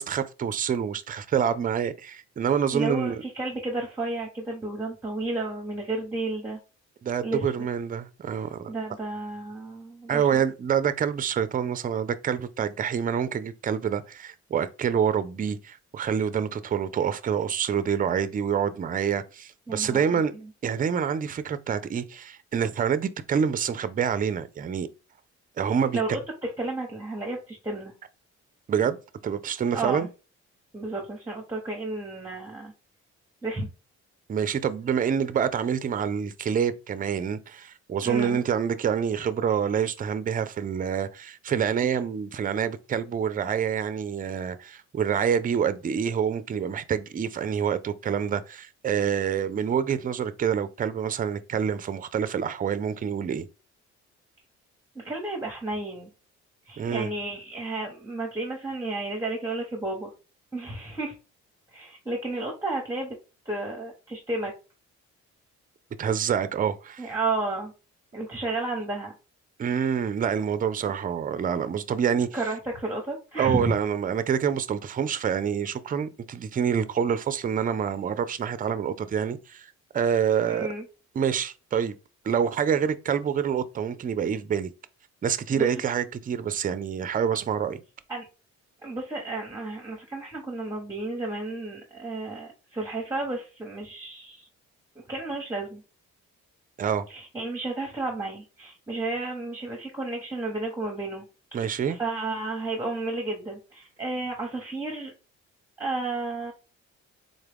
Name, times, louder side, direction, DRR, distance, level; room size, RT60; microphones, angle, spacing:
voice 1, 0.0-3.2 7.0-8.7 10.1-20.3 20.6-24.9 25.6-26.0 28.7-30.1 34.3-53.5 56.8-57.1 66.0-67.1 69.6-72.3 73.4-80.7 81.2-81.9 82.3-84.7 85.2-87.8 96.8-97.0 101.5-102.0, right 7 dB, 30° right, 0.4 m, -27 dB
voice 2, 2.7-6.6 7.2-7.5 8.7-10.4 19.7-20.5 25.7-27.9 29.7-30.1 30.7-32.7 33.4-33.7 38.0-38.4 54.9-56.1 56.7-60.1 60.5-61.1 61.7-63.2 63.4-64.5 67.0-67.7 68.1-69.1 72.3-73.6 80.5-80.8 85.6-85.7 88.1-88.2 88.8-94.5 95.1-95.8 97.1-101.3 101.6-105.1 105.8-106.5, right 2 dB, 10° right, 0.9 m, -32 dB
3.8 x 2.2 x 3.4 m
cardioid pair, 90°, 30 cm